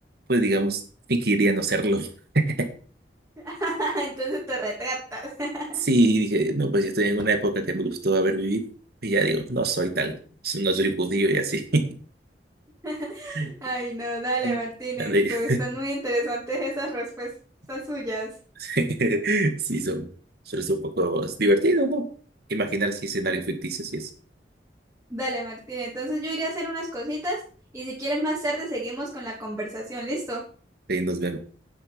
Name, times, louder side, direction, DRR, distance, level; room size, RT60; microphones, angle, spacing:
voice 1, 0.3-0.8 1.1-2.1 2.3-2.7 5.8-8.7 9.0-10.2 10.4-11.9 13.3-13.5 14.4-14.6 15.0-15.6 18.6-20.1 20.5-22.1 22.5-24.1 30.9-31.4, right 1 dB, 60° right, 6 dB, 2.0 m, -24 dB
voice 2, 3.4-5.8 12.8-17.3 17.7-18.3 25.1-27.4 27.7-30.4, right 1 dB, 15° right, -6 dB, 2.9 m, -30 dB
9.7 x 8.5 x 5.2 m, 0.42 s
head